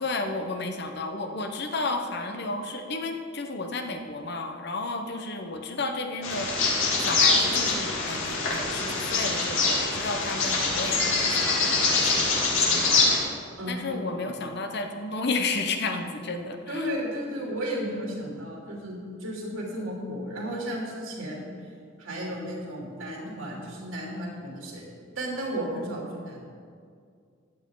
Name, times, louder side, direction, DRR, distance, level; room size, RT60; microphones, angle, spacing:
voice 1, 0.0-6.5 7.0-12.3 12.7-13.0 13.7-16.6, left 3 dB, 55° left, 5 dB, 1.1 m, -32 dB
Bird vocalization bird call bird song, 6.2-13.2, left 3 dB, 85° left, 2.9 m, -24 dB
voice 2, 13.6-14.3 16.7-21.5 22.0-24.9 25.1-26.4, equal, 90° right, -3 dB, 3.2 m, -34 dB
14.5 x 10.0 x 4.0 m, 2.2 s
head